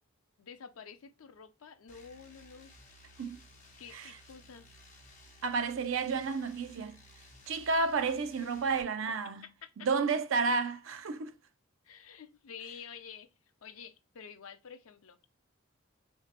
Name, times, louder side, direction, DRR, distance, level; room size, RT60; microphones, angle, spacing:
voice 1, 0.4-2.7 3.8-4.7 9.4-9.9 11.8-13.3 13.6-15.2, left 6 dB, 80° left, 0.6 m, -49 dB
sound 1, 1.9-8.8, left 1 dB, 35° left, 1.0 m, -57 dB
voice 2, 5.4-7.0 7.5-9.5 9.8-11.3, right 4 dB, 70° right, 0.4 m, -31 dB
3.3 x 2.7 x 3.9 m
head